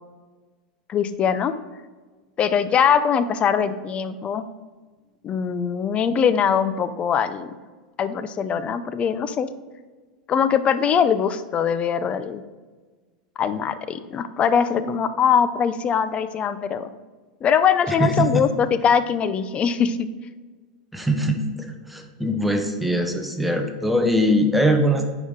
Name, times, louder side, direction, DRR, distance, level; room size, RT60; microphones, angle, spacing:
voice 1, 0.9-1.5 2.4-4.5 5.2-7.6 8.0-9.5 10.3-12.4 13.4-16.9 17.4-20.1, left 7 dB, 30° left, 12 dB, 0.5 m, -22 dB
voice 2, 17.9-18.4 20.9-25.0, equal, ahead, 4 dB, 1.0 m, -22 dB
9.4 x 5.1 x 3.7 m, 1.4 s
hypercardioid pair, 120°, 4 cm